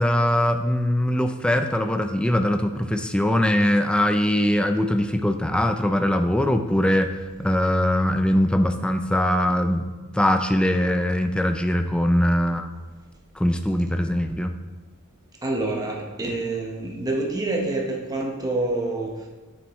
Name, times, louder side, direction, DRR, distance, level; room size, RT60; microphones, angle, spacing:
voice 1, 0.0-7.1 7.4-9.9 10.1-12.7 13.4-14.5, left 1 dB, 5° left, 6 dB, 0.4 m, -21 dB
voice 2, 15.4-19.1, right 2 dB, 15° right, 0 dB, 1.0 m, -27 dB
9.2 x 6.8 x 3.1 m, 1.3 s
head